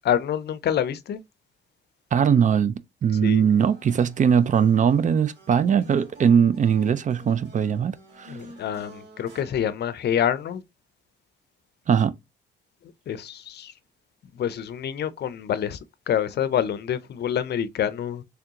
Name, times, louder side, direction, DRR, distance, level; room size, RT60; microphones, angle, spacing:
voice 1, 0.0-1.2 3.2-3.5 8.3-10.6 13.1-13.7 14.3-15.8 16.1-18.2, left 9 dB, 55° left, 0.5 m, -27 dB
voice 2, 2.1-8.4 11.9-12.1, right 7 dB, 40° right, 0.4 m, -20 dB
sound 1, 3.5-9.4, right 1 dB, 90° right, 2.1 m, -48 dB
3.5 x 3.4 x 2.8 m
cardioid pair, 90°, 20 cm